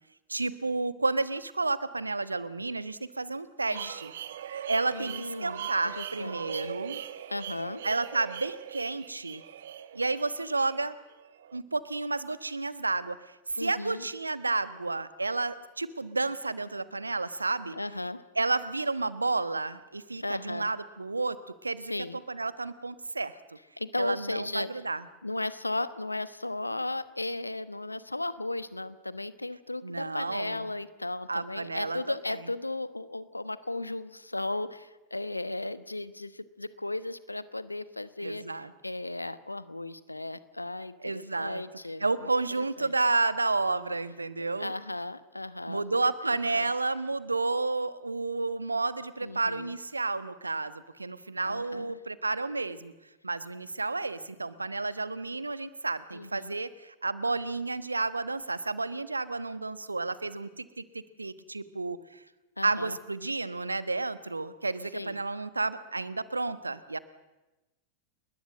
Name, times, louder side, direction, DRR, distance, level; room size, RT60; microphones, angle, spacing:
voice 1, 0.3-4.1 4.5-7.0 7.8-9.4 9.9-11.0 11.5-17.8 18.4-21.4 21.6-21.9 22.3-23.4 24.0-25.0 29.8-30.7 31.3-32.4 38.2-38.7 41.0-41.6 42.0-44.7 45.7-52.9 53.2-62.2 62.6-67.0, right 3 dB, 80° right, 14 dB, 1.2 m, -31 dB
sound 1, 3.7-11.6, right 10 dB, 60° right, 1.4 m, -41 dB
voice 2, 4.9-5.7 5.9-6.8 7.3-7.8 13.6-14.1 17.7-18.2 20.2-20.7 21.9-22.2 23.8-24.7 25.2-42.3 42.6-42.9 44.6-46.0 46.3-46.7 49.2-49.7 51.5-51.9 56.1-56.5 62.6-63.0 64.9-65.2, left 2 dB, 85° left, 15 dB, 1.2 m, -36 dB
30.0 x 21.0 x 7.6 m, 1.1 s
figure-of-eight pair, 90°, 0 cm